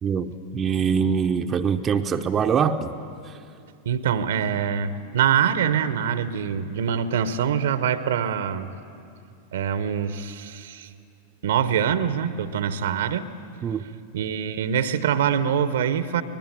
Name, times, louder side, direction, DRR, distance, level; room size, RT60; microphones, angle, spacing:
voice 1, 0.0-2.9 13.6-13.8, right 6 dB, 25° right, 5 dB, 0.8 m, -23 dB
voice 2, 3.8-8.7 9.5-10.9 11.4-13.3 14.1-16.2, right 8 dB, 60° right, 13 dB, 1.0 m, -24 dB
24.5 x 20.0 x 9.3 m, 2.4 s
figure-of-eight pair, 90°, 0 cm